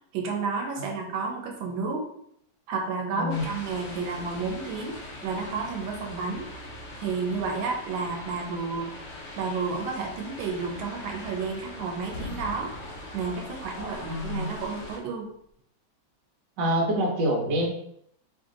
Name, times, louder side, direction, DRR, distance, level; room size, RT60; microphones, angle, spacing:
voice 1, 0.1-2.1 2.7-6.5 7.0-8.9 9.4-12.7 13.1-15.3, right 4 dB, 90° right, 2 dB, 1.4 m, -31 dB
cars on wet street stereo, 3.3-15.0, left 1 dB, 90° left, 0.6 m, -42 dB
sound 1, 11.4-11.7 12.0-14.2, left 2 dB, 65° left, 1.2 m, -42 dB
voice 2, 13.8-14.5 16.6-17.7, equal, 65° right, 0 dB, 1.3 m, -27 dB
3.1 x 2.6 x 3.7 m, 0.71 s
omnidirectional pair, 2.1 m